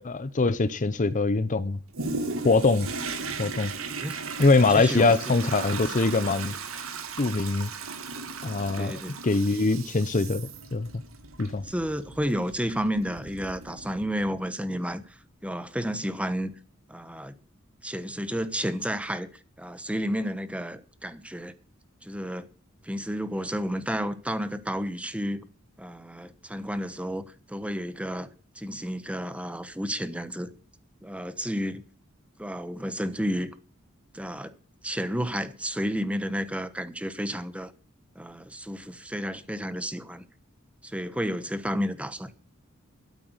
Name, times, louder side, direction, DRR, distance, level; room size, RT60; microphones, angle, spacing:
voice 1, 0.0-1.8 2.4-2.9 3.4-3.7 4.4-6.6 7.2-7.7 8.4-10.9 11.4-11.6, left 3 dB, 40° left, 0.7 m, -23 dB
Toilet flush, 1.9-14.4 14.9-15.0, right 4 dB, 75° right, 2.0 m, -37 dB
voice 2, 4.7-5.5 8.8-9.1 11.6-16.5 16.9-17.3 17.8-19.3 19.6-21.5 22.0-22.5 22.8-25.5 25.8-28.3 28.6-30.5 31.0-31.8 32.4-33.5 34.1-34.5 34.8-37.7 38.1-40.2 40.8-42.3, equal, 5° right, 1.1 m, -31 dB
13.0 x 8.8 x 8.0 m
head